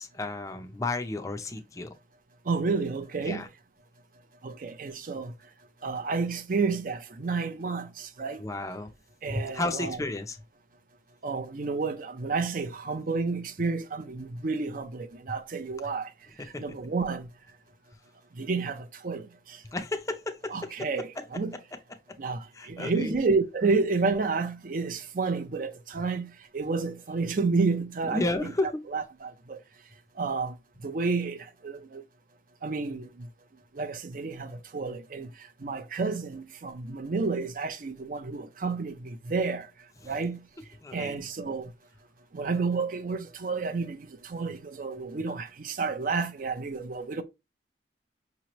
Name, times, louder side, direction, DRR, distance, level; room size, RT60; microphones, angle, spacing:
voice 1, 0.0-1.9 3.2-3.5 8.4-8.9 9.3-10.4 16.4-16.6 19.7-20.7 21.2-21.3 22.5-23.1 28.0-28.8 40.0-40.2 40.8-41.2, left 2 dB, 20° left, 0.5 m, -32 dB
voice 2, 2.5-3.4 4.4-5.3 5.8-7.9 8.2-8.4 9.2-10.0 11.2-16.1 16.6-17.3 18.4-18.8 19.0-19.2 20.5-21.5 22.2-22.4 22.7-26.3 26.5-29.3 30.2-30.5 30.8-31.4 31.6-31.7 32.6-33.1 33.8-34.5 34.7-35.3 35.6-39.6 40.1-40.4 40.9-41.6 42.4-44.0 44.3-47.2, right 4 dB, 50° right, 0.5 m, -30 dB
5.7 x 2.9 x 3.0 m
head